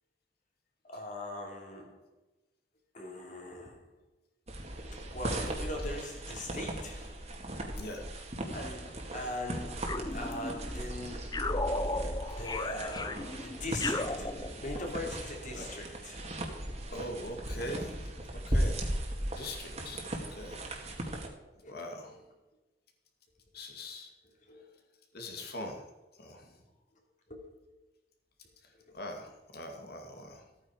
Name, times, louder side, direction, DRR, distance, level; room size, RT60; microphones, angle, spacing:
voice 1, 0.8-2.0 2.9-3.9 5.0-7.2 8.5-11.5 12.2-16.4 21.6-22.2 24.4-24.7 27.3-27.6 28.7-29.0, left 1 dB, 45° left, 2.9 m, -41 dB
sound 1, 4.5-21.3, right 1 dB, 40° right, 2.1 m, -37 dB
sound 2, 9.8-10.8 11.3-15.0, left 2 dB, 25° left, 0.7 m, -36 dB
voice 2, 16.9-18.1 18.5-18.9 19.3-20.1 20.3-20.6 21.7-22.1 23.5-24.1 25.1-25.8 26.2-26.6 28.9-30.4, left 1 dB, 60° left, 2.3 m, -42 dB
14.5 x 9.0 x 5.0 m
head